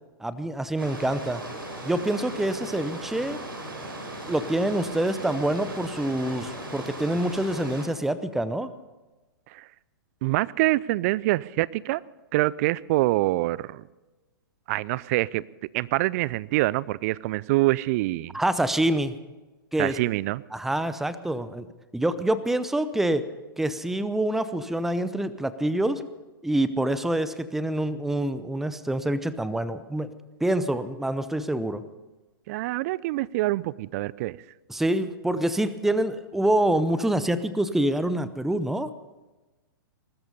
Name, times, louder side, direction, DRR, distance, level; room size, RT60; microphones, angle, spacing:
voice 1, 0.2-1.4 1.8-3.4 4.3-8.7 18.3-19.1 19.7-20.0 20.5-21.7 21.9-23.2 23.6-26.1 26.4-30.1 30.4-31.8 34.7-38.9, right 1 dB, 5° right, 14 dB, 0.7 m, -26 dB
sound 1, 0.8-7.9, right 1 dB, 80° right, 4.8 m, -37 dB
voice 2, 10.2-12.0 12.3-13.8 14.7-15.4 15.7-18.3 19.8-20.4 32.5-34.4, right 19 dB, 45° right, 22 dB, 0.4 m, -25 dB
20.0 x 13.0 x 5.5 m, 1.2 s
figure-of-eight pair, 115°, 12 cm